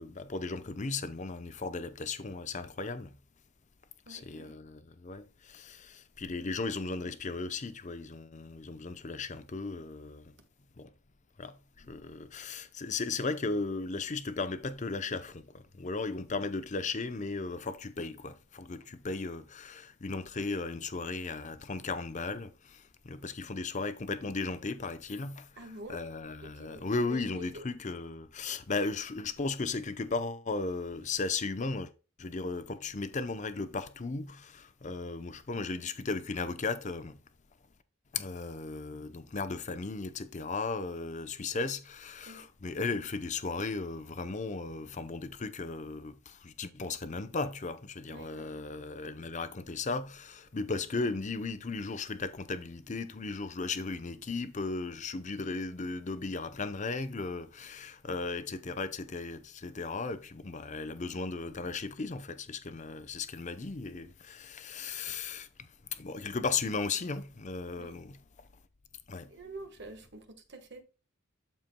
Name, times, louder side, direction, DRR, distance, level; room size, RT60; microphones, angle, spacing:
voice 1, 0.0-3.1 4.1-10.3 10.8-10.9 11.4-25.5 25.9-31.9 32.2-37.2 38.1-65.5 65.9-68.2 69.1-69.3, left 3 dB, 35° left, 0.6 m, -36 dB
voice 2, 4.1-4.5 25.6-26.0 26.4-27.7 42.3-42.4 48.1-48.7 67.7-67.9 69.2-70.8, right 1 dB, 55° right, 1.3 m, -47 dB
13.0 x 4.4 x 2.2 m
head